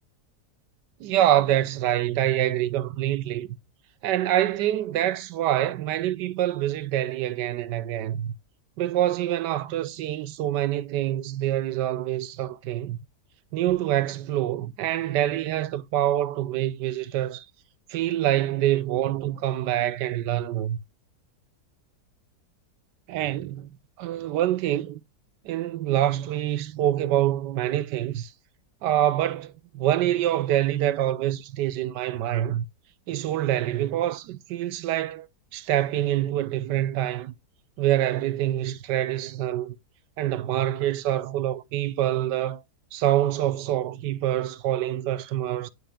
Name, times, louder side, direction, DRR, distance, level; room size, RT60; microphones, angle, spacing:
voice 1, 1.0-3.5 4.0-8.3 8.8-13.0 13.5-17.5 17.9-20.8 23.1-25.0 25.4-28.3 28.8-32.7 33.1-35.3 35.5-37.3 37.8-39.8 40.2-42.6 42.9-45.7, right 12 dB, 85° right, 1.3 m, -26 dB
9.5 x 4.3 x 3.4 m
omnidirectional pair, 1.8 m